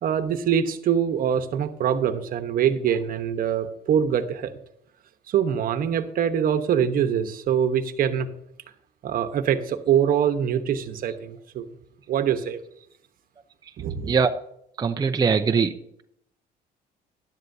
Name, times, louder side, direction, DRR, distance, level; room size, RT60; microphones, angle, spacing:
voice 1, 0.0-4.5 5.3-8.3 9.0-11.7 12.1-12.6 13.8-14.1, right 8 dB, 60° right, 9 dB, 1.1 m, -24 dB
voice 2, 14.8-16.0, right 5 dB, 25° right, 6 dB, 0.6 m, -22 dB
12.5 x 11.0 x 2.7 m, 0.73 s
cardioid pair, 110°, 17 cm